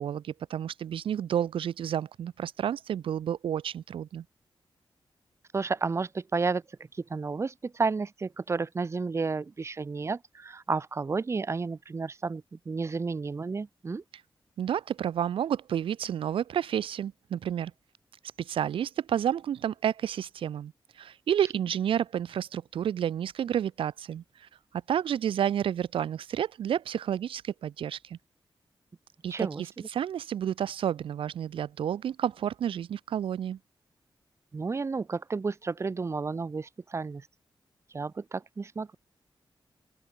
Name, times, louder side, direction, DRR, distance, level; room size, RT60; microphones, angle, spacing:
voice 1, 0.0-4.2 14.6-17.7 18.4-24.5 24.9-28.2 29.2-33.6, right 9 dB, 85° right, 0.4 m, -30 dB
voice 2, 5.5-6.6 7.0-14.0 29.3-29.9 34.5-37.2 37.9-39.0, right 4 dB, 30° right, 0.7 m, -32 dB
open air
wide cardioid pair, 120°, 9 cm